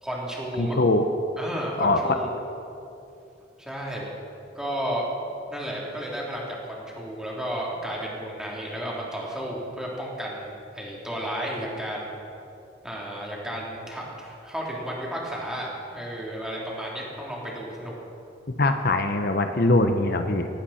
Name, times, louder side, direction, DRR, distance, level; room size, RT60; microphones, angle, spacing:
voice 1, 0.0-0.8 1.4-2.3 3.6-4.1 4.5-5.1 5.5-12.1 12.8-17.9, equal, 5° right, -4 dB, 3.3 m, -33 dB
voice 2, 0.6-1.1 1.8-2.2 18.6-20.5, left 2 dB, 60° left, 6 dB, 0.9 m, -22 dB
17.5 x 16.5 x 4.3 m, 2.7 s
head